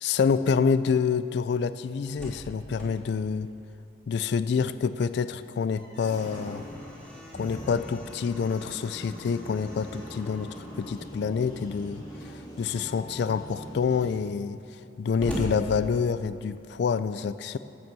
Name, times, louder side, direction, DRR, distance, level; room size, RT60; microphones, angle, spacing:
voice 1, 0.0-3.5 4.1-6.6 7.3-10.5 10.8-17.6, left 6 dB, 60° left, 13 dB, 0.3 m, -27 dB
Slam, 2.0-4.6 4.9-5.0 5.4-11.1 12.0-12.5 13.1-13.2 13.4-16.5, right 1 dB, 5° left, 3.0 m, -42 dB
sound 1, 5.9-14.2, equal, 25° left, 2.0 m, -42 dB
11.0 x 9.4 x 7.3 m, 2.9 s
head